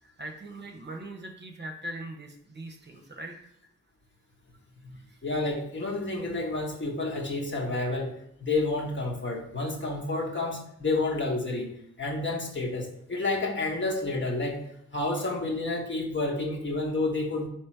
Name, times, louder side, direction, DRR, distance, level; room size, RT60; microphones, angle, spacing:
voice 1, 0.0-3.3 5.1-5.2, right 1 dB, 35° right, 2 dB, 0.8 m, -41 dB
voice 2, 4.8-11.7 12.0-14.6 14.9-17.5, left 2 dB, 35° left, -1 dB, 1.2 m, -30 dB
3.3 x 3.1 x 4.5 m, 0.71 s
supercardioid pair, 40°, 31 cm